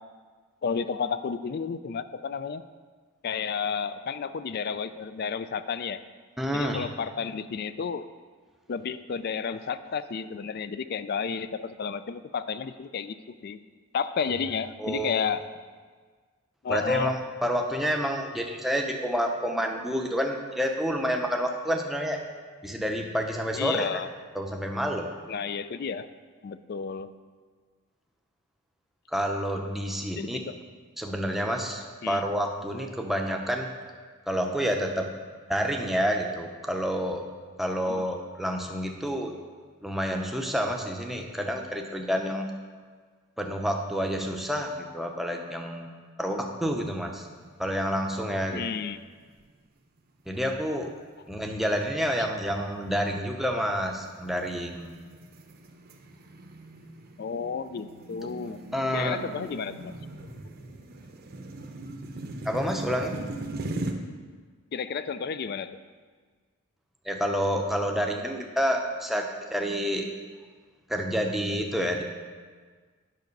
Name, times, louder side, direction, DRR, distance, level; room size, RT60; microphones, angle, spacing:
voice 1, 0.6-2.6 3.2-6.0 6.5-8.1 8.7-13.1 13.4-13.6 13.9-15.4 16.6-17.2 23.5-24.1 25.3-26.1 26.4-27.1 30.1-30.6 32.0-32.2 37.9-38.1 48.5-49.0 57.2-58.6 58.9-59.9 64.7-65.8, left 6 dB, 45° left, 13 dB, 0.3 m, -32 dB
voice 2, 6.4-6.9 14.8-15.2 16.7-22.2 22.6-23.9 24.3-25.1 29.1-30.4 31.0-33.7 34.3-35.1 35.5-37.3 37.6-39.3 39.8-42.5 43.4-45.9 46.2-47.3 47.6-48.6 50.3-50.9 51.3-54.9 58.7-59.2 62.4-63.2 67.1-69.2 69.5-70.1 70.9-72.0, equal, ahead, 2 dB, 0.6 m, -28 dB
sound 1, 47.5-48.0 48.4-48.5 49.2-49.7 50.2-50.4 51.1-63.9, right 2 dB, 45° right, 0.7 m, -40 dB
9.2 x 5.9 x 5.3 m, 1.5 s
head